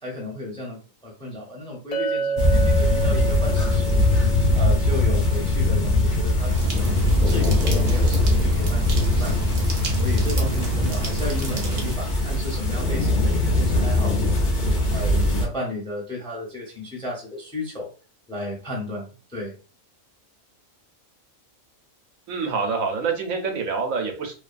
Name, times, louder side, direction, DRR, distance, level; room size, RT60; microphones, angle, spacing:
voice 1, 0.0-4.0 4.5-9.4 9.9-14.3 14.9-17.9 18.3-19.5, left 1 dB, 5° left, -2 dB, 0.5 m, -34 dB
Chink clink, 1.9-6.2, right 5 dB, 75° left, 0.9 m, -30 dB
sound 1, 2.4-15.5, left 2 dB, 45° left, 0.8 m, -21 dB
sound 2, 6.5-12.0, right 3 dB, 55° right, 0.8 m, -28 dB
voice 2, 22.3-24.3, right 4 dB, 85° right, 3 dB, 1.1 m, -26 dB
2.7 x 2.3 x 2.5 m, 0.36 s
omnidirectional pair, 1.4 m